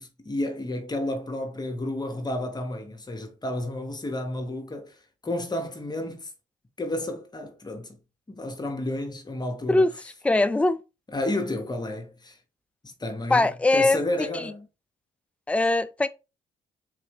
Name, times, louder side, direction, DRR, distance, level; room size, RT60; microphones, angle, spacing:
voice 1, 0.0-6.3 6.8-8.0 8.3-9.9 11.1-12.4 12.8-14.6, left 1 dB, 25° left, 1.1 m, -31 dB
voice 2, 10.2-10.8 13.3-14.0 14.3-14.5 15.5-16.1, left 2 dB, 5° left, 0.4 m, -21 dB
4.0 x 2.6 x 3.5 m
hypercardioid pair, 50°, 17 cm